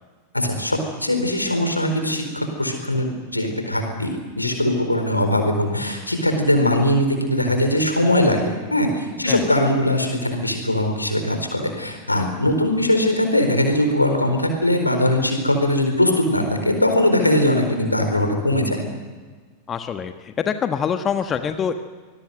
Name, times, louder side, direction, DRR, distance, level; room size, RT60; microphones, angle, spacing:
voice 1, 0.3-4.1 4.4-18.8, left 1 dB, 85° left, 5 dB, 4.4 m, -21 dB
voice 2, 19.7-21.7, left 7 dB, 25° left, 8 dB, 1.3 m, -25 dB
25.5 x 21.0 x 8.0 m, 1.4 s
figure-of-eight pair, 90°, 0 cm